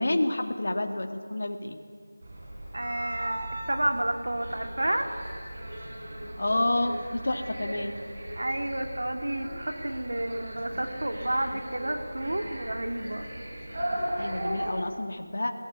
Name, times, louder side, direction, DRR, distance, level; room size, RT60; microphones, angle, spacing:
voice 1, 0.0-1.8 6.4-8.0 14.2-15.5, left 1 dB, 60° left, 5 dB, 1.8 m, -29 dB
sound 1, 2.2-14.7, right 1 dB, 55° right, 5.1 m, -37 dB
voice 2, 2.7-5.1 8.4-13.3, right 1 dB, 75° right, 5 dB, 2.3 m, -30 dB
21.5 x 16.0 x 8.2 m, 2.1 s
figure-of-eight pair, 170°, 0 cm